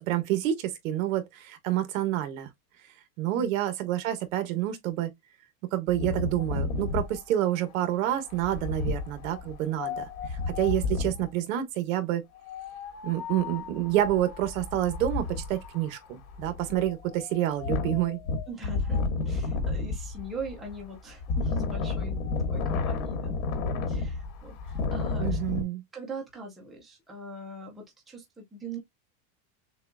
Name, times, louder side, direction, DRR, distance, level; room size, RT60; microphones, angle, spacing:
voice 1, 0.0-2.5 3.2-5.1 5.7-10.0 10.3-12.2 13.0-18.2 25.2-25.8, right 12 dB, 60° right, 1.2 m, -28 dB
Wind, 5.9-11.3 12.4-25.6, left 4 dB, 70° left, 1.8 m, -32 dB
voice 2, 18.5-22.2 22.5-23.4 23.9-25.4 25.9-28.8, right 2 dB, ahead, 0.4 m, -41 dB
6.6 x 2.3 x 2.5 m
supercardioid pair, 175°, 43 cm